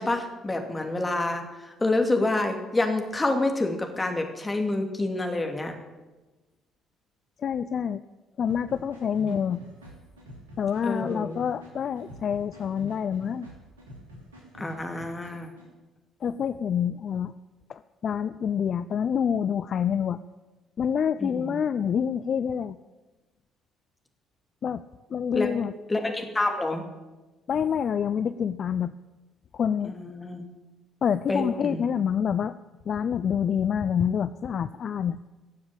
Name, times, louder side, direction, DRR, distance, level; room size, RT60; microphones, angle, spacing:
voice 1, 0.0-5.7 9.3-9.4 10.8-11.4 14.6-15.5 21.2-21.6 25.3-25.5 25.9-26.8 29.8-30.4 31.3-31.8, left 2 dB, 20° left, 3 dB, 2.7 m, -28 dB
voice 2, 7.4-8.0 8.4-9.6 10.6-13.5 16.2-17.3 17.7-20.2 20.8-22.8 24.6-24.8 25.1-25.7 27.5-28.9 29.5-30.0 31.0-32.5 32.9-35.2, left 8 dB, 50° left, 13 dB, 0.4 m, -27 dB
sound 1, 8.5-15.7, right 1 dB, 85° right, 3.0 m, -47 dB
17.0 x 7.2 x 8.9 m, 1.2 s
figure-of-eight pair, 50°, 0 cm